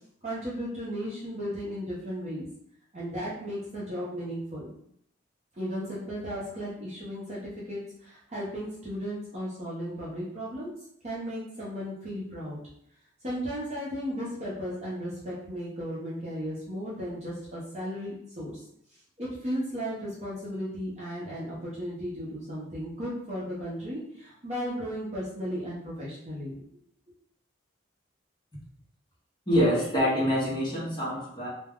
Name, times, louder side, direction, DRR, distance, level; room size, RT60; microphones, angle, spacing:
voice 1, 0.2-2.5 2.9-4.7 5.5-10.7 11.0-12.6 13.2-18.6 19.2-26.6, equal, 35° right, -8 dB, 0.6 m, -35 dB
voice 2, 29.5-31.5, equal, 25° left, -6 dB, 0.8 m, -25 dB
2.2 x 2.1 x 3.4 m, 0.71 s
head